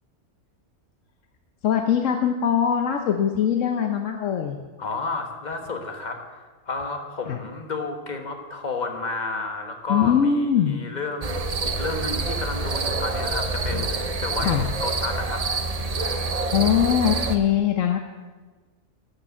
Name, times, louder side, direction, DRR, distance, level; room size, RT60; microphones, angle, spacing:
voice 1, 1.6-4.6 7.3-7.4 9.9-10.8 13.7-13.8 14.4-14.6 16.5-18.0, left 8 dB, 75° left, 5 dB, 1.1 m, -22 dB
voice 2, 4.8-15.4 16.5-16.8, left 3 dB, 35° left, 4 dB, 1.4 m, -32 dB
sound 1, 11.2-17.4, right 3 dB, 35° right, 0.7 m, -27 dB
12.5 x 6.7 x 7.2 m, 1.3 s
omnidirectional pair, 1.3 m